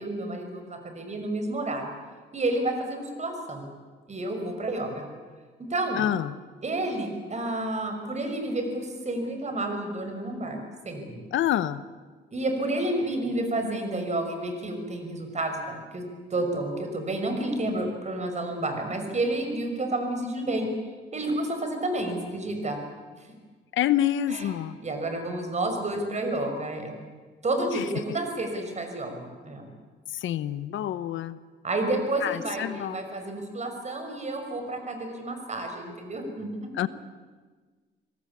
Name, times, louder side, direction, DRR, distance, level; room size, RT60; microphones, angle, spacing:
voice 1, 0.0-1.9 2.3-3.7 4.1-5.1 5.6-6.1 6.6-11.2 12.3-16.0 16.3-20.7 21.1-22.8 24.3-24.5 24.8-26.9 27.4-29.7 31.6-36.9, right 2 dB, 35° right, 5 dB, 5.8 m, -30 dB
voice 2, 6.0-6.4 11.3-11.8 23.7-24.8 27.7-27.8 30.1-31.4 32.2-33.0 36.7-36.9, left 11 dB, 75° left, 15 dB, 1.0 m, -27 dB
26.0 x 18.0 x 8.5 m, 1.4 s
cardioid pair, 90°, 20 cm